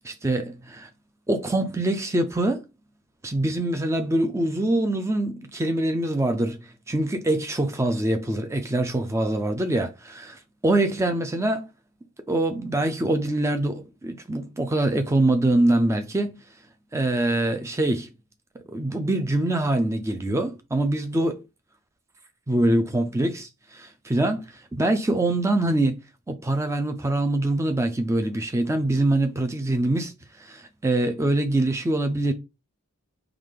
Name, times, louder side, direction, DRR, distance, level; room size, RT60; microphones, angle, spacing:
voice 1, 0.0-0.9 1.3-2.6 3.2-11.7 12.3-16.4 16.9-18.1 18.7-21.4 22.5-24.4 24.7-30.1 30.4-32.3, right 1 dB, 15° right, 0.3 m, -24 dB
3.7 x 2.4 x 3.2 m
head